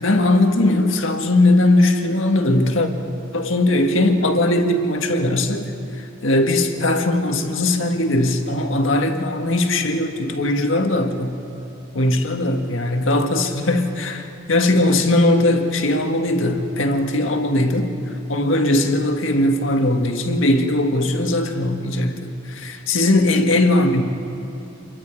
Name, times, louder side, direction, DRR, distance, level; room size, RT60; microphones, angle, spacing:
voice 1, 0.0-2.9 3.3-5.7 6.2-11.4 11.9-17.9 18.3-24.0, left 1 dB, 90° left, 4 dB, 1.7 m, -19 dB
28.0 x 23.0 x 4.7 m, 2.9 s
head